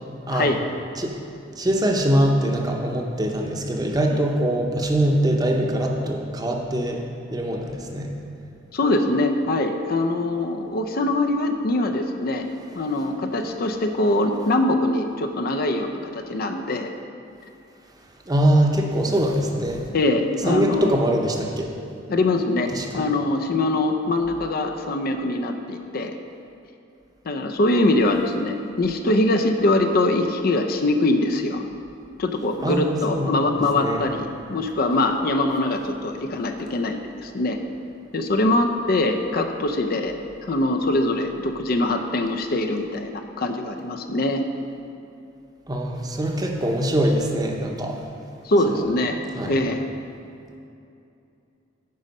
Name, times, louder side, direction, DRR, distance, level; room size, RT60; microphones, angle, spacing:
voice 1, 1.6-7.0 7.3-8.1 18.3-19.9 20.5-21.7 22.7-23.0 32.6-34.0 45.7-48.0 48.7-48.8 49.4-49.6, right 1 dB, 20° right, 1 dB, 0.8 m, -23 dB
voice 2, 8.7-12.5 12.7-16.9 19.9-20.9 22.1-26.2 27.3-31.6 32.2-37.6 38.1-40.1 40.4-44.4 48.4-49.2 49.5-49.8, left 2 dB, 50° left, 5 dB, 0.5 m, -23 dB
9.4 x 5.0 x 5.3 m, 2.7 s
head